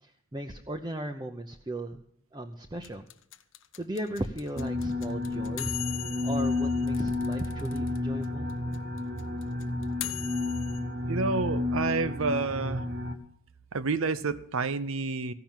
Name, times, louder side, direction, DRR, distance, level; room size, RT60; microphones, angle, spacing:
voice 1, 0.0-2.0 2.3-3.1 3.7-8.5, right 1 dB, 20° right, 2 dB, 0.6 m, -37 dB
sound 1, 2.8-8.0 8.2-8.3 8.5-10.8, left 16 dB, 60° left, 0.7 m, -39 dB
sound 2, 4.6-13.2, left 2 dB, 55° right, 1.3 m, -31 dB
voice 2, 11.0-12.9 13.7-15.3, right 4 dB, 70° right, 14 dB, 0.7 m, -29 dB
15.0 x 5.9 x 9.0 m, 0.67 s
head